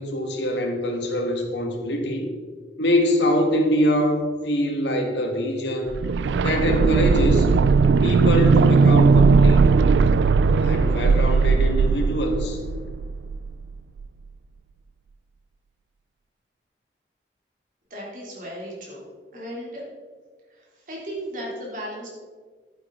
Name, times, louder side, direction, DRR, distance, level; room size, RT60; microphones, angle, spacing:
voice 1, 0.0-2.3 2.8-6.0 6.4-7.5 8.0-9.7 10.6-12.6, equal, 80° left, 2 dB, 1.7 m, -24 dB
sound 1, 5.9-13.7 14.0-14.1, right 4 dB, 80° right, 0.3 m, -18 dB
voice 2, 17.9-19.8 20.5-22.1, equal, 45° right, -4 dB, 3.0 m, -36 dB
11.0 x 9.4 x 3.8 m, 1.5 s
head